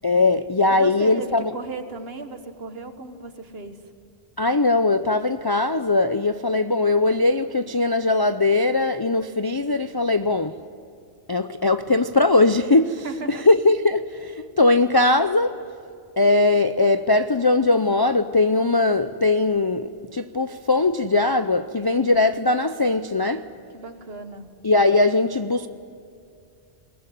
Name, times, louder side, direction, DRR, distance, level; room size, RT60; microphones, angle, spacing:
voice 1, 0.0-1.5 4.4-10.5 11.3-15.6 16.2-23.4 24.6-25.7, left 2 dB, 35° left, 0.4 m, -20 dB
voice 2, 0.7-3.8 13.0-13.5 23.7-24.5, right 4 dB, 60° right, 1.7 m, -35 dB
21.5 x 19.5 x 10.0 m
omnidirectional pair, 1.2 m